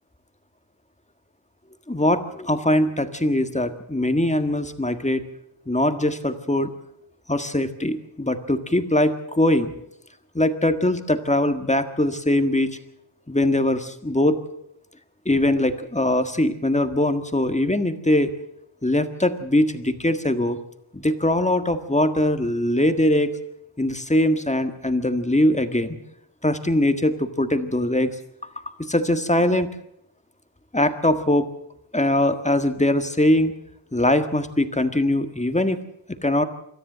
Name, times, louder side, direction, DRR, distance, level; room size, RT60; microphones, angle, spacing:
voice 1, 1.9-5.3 5.7-6.7 7.3-9.7 10.3-12.8 13.3-14.4 15.2-18.3 18.8-20.6 20.9-23.4 23.8-26.0 26.4-28.1 28.6-29.7 30.7-31.5 31.9-33.5 33.9-35.8 36.2-36.4, left 1 dB, 15° left, 8 dB, 1.6 m, -21 dB
26.0 x 13.5 x 7.5 m, 0.74 s
wide cardioid pair, 85°, 48 cm